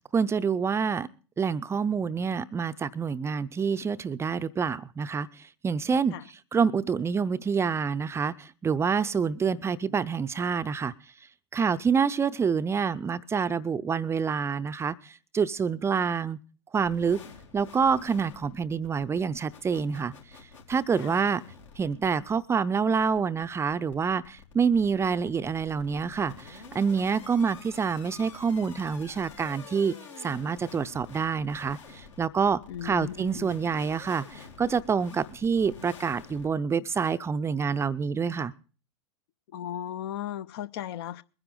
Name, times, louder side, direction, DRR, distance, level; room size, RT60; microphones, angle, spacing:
voice 1, 0.1-1.1 1.4-5.3 5.6-6.1 6.5-10.9 11.5-14.9 15.3-16.4 16.7-17.2 17.5-20.1 20.7-21.4 21.8-29.9 30.2-38.5, right 6 dB, 15° right, 0.6 m, -27 dB
sound 1, 16.8-36.5, left 5 dB, 80° left, 3.7 m, -49 dB
voice 2, 32.7-33.5 39.5-41.2, left 11 dB, 55° left, 0.7 m, -36 dB
21.5 x 10.0 x 3.8 m
figure-of-eight pair, 90°, 16 cm